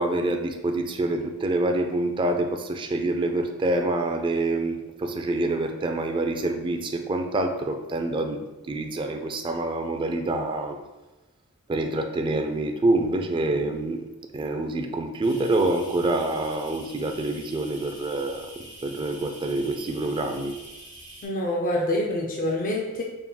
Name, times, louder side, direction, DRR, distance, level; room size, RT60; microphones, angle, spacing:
voice 1, 0.0-10.8 11.7-14.0 14.3-20.6, right 2 dB, 25° right, 5 dB, 0.3 m, -26 dB
sound 1, 15.2-21.3, right 1 dB, 20° left, 1.5 m, -45 dB
voice 2, 21.2-23.0, left 1 dB, 40° left, -1 dB, 0.5 m, -26 dB
4.1 x 3.6 x 2.3 m, 1.1 s
head